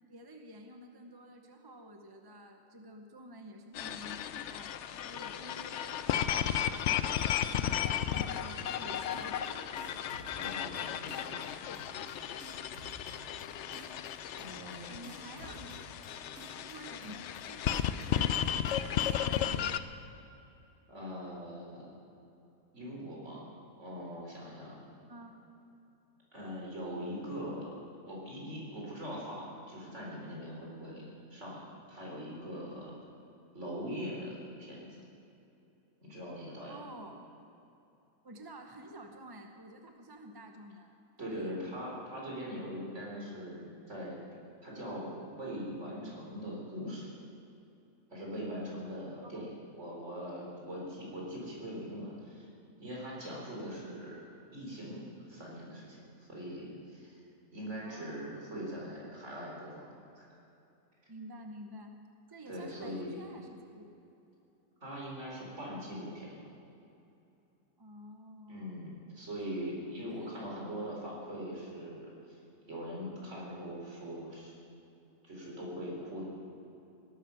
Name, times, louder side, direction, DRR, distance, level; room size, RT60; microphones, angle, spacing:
voice 1, 0.1-7.1 7.5-9.9 10.1-10.3 14.9-16.2 16.5-20.0 25.1-25.6 36.7-37.3 38.2-41.6 49.2-49.4 57.8-58.4 61.1-61.9 62.3-63.9 67.8-68.8 70.0-70.9, right 1 dB, 20° right, 4 dB, 0.7 m, -50 dB
sound 1, 3.8-19.8, left 10 dB, 65° left, 0.7 m, -34 dB
sound 2, 9.1-9.5 9.8-10.8 11.1-11.5 11.7-12.1 12.4-13.4 13.7-14.1 14.4-14.8 15.0-16.1 16.4-16.7 17.0-17.4 17.7-18.7 19.0-19.4, right 2 dB, 60° right, 3.0 m, -52 dB
voice 2, 10.3-12.1 14.4-15.0 20.9-21.9 22.7-23.5 23.8-24.9 26.3-27.7 28.1-32.9 33.5-35.0 36.0-36.8 41.2-44.2 44.6-47.1 48.1-52.5 52.8-54.2 54.5-57.2 57.5-59.9 60.2-60.3 62.5-63.2 64.8-66.3 68.5-72.4 72.7-74.5 75.2-76.2, equal, 45° right, -4 dB, 4.5 m, -42 dB
18.0 x 12.5 x 5.8 m, 2.8 s
omnidirectional pair, 1.7 m